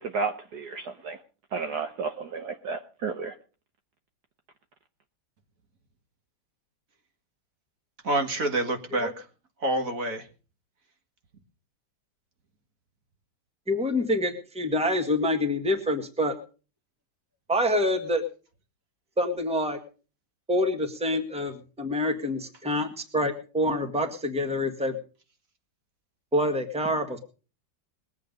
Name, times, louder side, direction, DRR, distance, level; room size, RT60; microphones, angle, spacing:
voice 1, 0.0-1.2 1.5-3.3, right 4 dB, 65° right, 7 dB, 1.4 m, -32 dB
voice 2, 8.0-9.3 9.6-10.3, right 2 dB, 45° right, 6 dB, 1.9 m, -27 dB
voice 3, 13.7-16.4 17.5-18.2 19.2-19.8 20.5-25.0 26.3-27.2, left 1 dB, 5° right, 6 dB, 1.5 m, -26 dB
21.0 x 8.3 x 5.3 m, 0.37 s
omnidirectional pair, 2.0 m